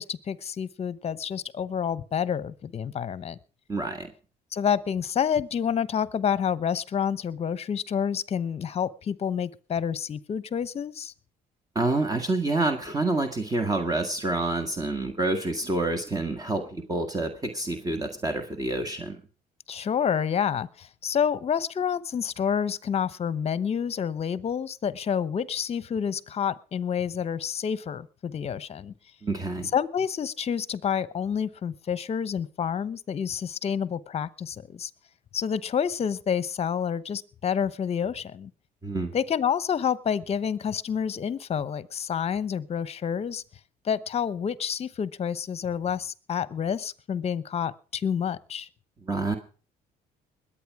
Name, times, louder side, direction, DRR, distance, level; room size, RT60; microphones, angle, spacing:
voice 1, 0.0-3.4 4.5-11.1 19.7-28.9 29.7-34.9 35.3-38.5 39.1-43.4 43.8-48.7, left 7 dB, 35° left, 18 dB, 0.9 m, -28 dB
voice 2, 3.7-4.1 11.7-19.2 29.2-29.7 38.8-39.1 49.0-49.4, right 2 dB, 20° right, 6 dB, 1.7 m, -28 dB
21.0 x 9.0 x 4.8 m, 0.38 s
cardioid pair, 110°, 17 cm